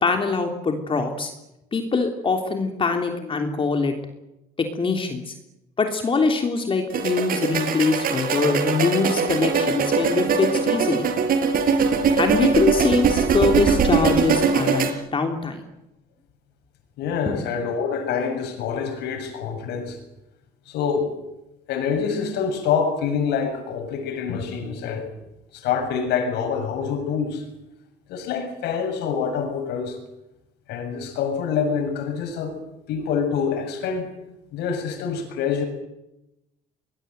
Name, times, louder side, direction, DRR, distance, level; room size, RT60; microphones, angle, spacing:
voice 1, 0.0-1.3 1.7-3.9 4.6-5.3 5.8-11.1 12.2-15.6, left 4 dB, 30° left, 4 dB, 3.3 m, -23 dB
sound 1, 6.9-14.9, right 5 dB, 60° right, 4.7 m, -21 dB
voice 2, 17.0-20.0 20.7-21.1 21.7-25.1 25.5-27.4 28.1-30.0 30.7-32.5 32.9-34.1 34.5-35.6, left 6 dB, 80° left, 6 dB, 7.2 m, -26 dB
23.5 x 21.0 x 9.4 m, 0.91 s
cardioid pair, 110°, 17 cm